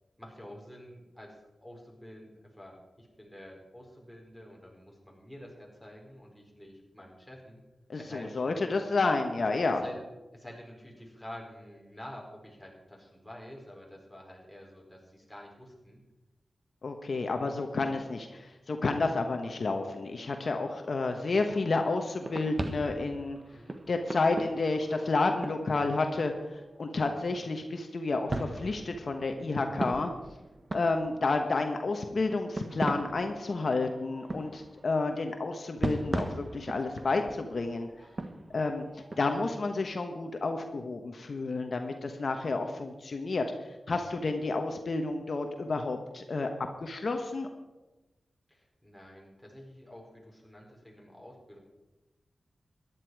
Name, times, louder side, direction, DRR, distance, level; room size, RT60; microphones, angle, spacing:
voice 1, 0.2-7.6 8.0-8.6 9.8-10.1 10.3-16.0 23.5-23.8 48.5-51.6, left 1 dB, 5° left, -1 dB, 4.6 m, -48 dB
voice 2, 7.9-9.8 16.8-23.4 23.9-30.1 30.7-37.9 38.5-43.4 43.9-46.5 46.8-47.5, left 3 dB, 65° left, 5 dB, 1.1 m, -30 dB
sound 1, 21.2-27.3 27.8-27.9 28.3-31.8 32.2-39.6, right 2 dB, 40° right, 1.3 m, -39 dB
14.0 x 11.0 x 4.8 m, 1.1 s
cardioid pair, 60°, 0 cm